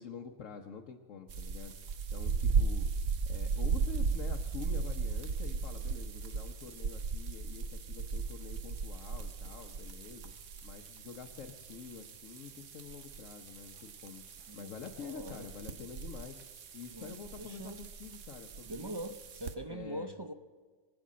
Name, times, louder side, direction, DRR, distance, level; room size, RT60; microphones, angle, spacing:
voice 1, 0.0-2.9 3.2-10.3 10.6-16.4 16.7-19.0 19.7-20.1, left 6 dB, 85° left, 1 dB, 1.3 m, -47 dB
sound 1, 1.3-19.5, right 5 dB, 80° right, 1.3 m, -37 dB
voice 2, 14.5-15.5 16.9-17.8 18.7-20.3, right 1 dB, 35° right, 8 dB, 0.4 m, -43 dB
21.5 x 8.5 x 7.5 m, 1.5 s
omnidirectional pair, 1.3 m